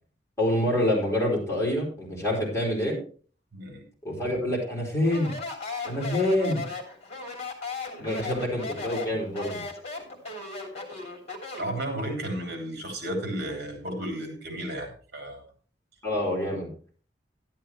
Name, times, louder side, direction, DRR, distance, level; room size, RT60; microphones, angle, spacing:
voice 1, 0.4-3.0 4.0-5.3 5.8-6.6 8.0-9.6 16.0-16.7, left 1 dB, 15° left, -2 dB, 4.8 m, -26 dB
voice 2, 3.5-3.8 8.1-8.2 11.0-11.1 11.6-15.4, right 1 dB, 60° right, 3 dB, 3.4 m, -33 dB
Speech, 5.0-11.8, left 3 dB, 35° left, 2.8 m, -36 dB
12.0 x 11.5 x 3.2 m, 0.40 s
head